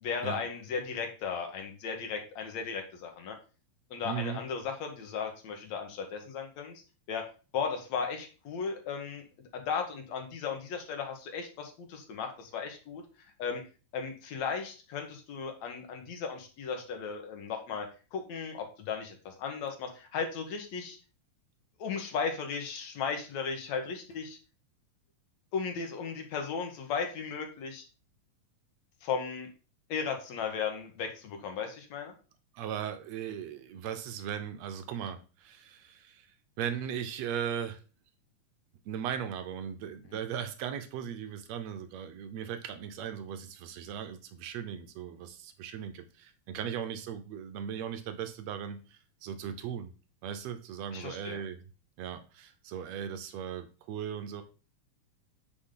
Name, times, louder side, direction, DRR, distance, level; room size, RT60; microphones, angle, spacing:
voice 1, 0.0-3.4 3.9-6.8 7.1-7.2 7.5-9.2 9.5-13.0 13.4-13.6 13.9-17.9 18.1-21.0 21.8-24.4 25.5-27.8 29.0-29.5 29.9-32.1 50.9-51.4, left 6 dB, 60° left, 4 dB, 2.5 m, -36 dB
voice 2, 4.0-4.4 32.5-36.3 36.6-37.8 38.9-49.9 50.2-51.6 52.0-54.4, right 8 dB, 75° right, 9 dB, 1.6 m, -38 dB
8.6 x 5.2 x 3.8 m, 0.34 s
omnidirectional pair, 3.9 m